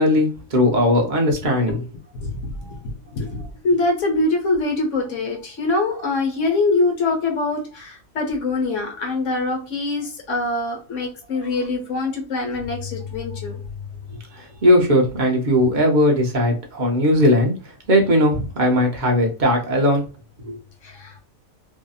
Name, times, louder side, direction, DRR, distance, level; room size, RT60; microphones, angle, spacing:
voice 1, 0.0-1.8 14.3-17.5 17.9-20.0 20.4-20.6, left 1 dB, 45° right, 1 dB, 0.7 m, -18 dB
voice 2, 2.2-13.6 20.8-21.2, left 3 dB, 65° left, 1 dB, 1.3 m, -24 dB
2.8 x 2.6 x 2.3 m, 0.34 s
omnidirectional pair, 1.4 m